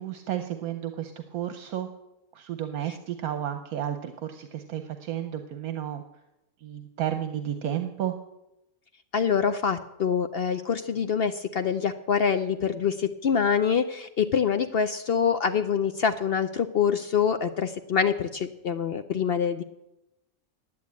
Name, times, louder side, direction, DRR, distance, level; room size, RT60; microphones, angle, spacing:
voice 1, 0.0-1.9 2.3-6.0 6.6-8.1, right 10 dB, 75° right, 7 dB, 1.2 m, -32 dB
voice 2, 9.1-19.6, left 7 dB, 60° left, 9 dB, 0.6 m, -25 dB
11.0 x 8.7 x 8.3 m, 0.91 s
omnidirectional pair, 1.5 m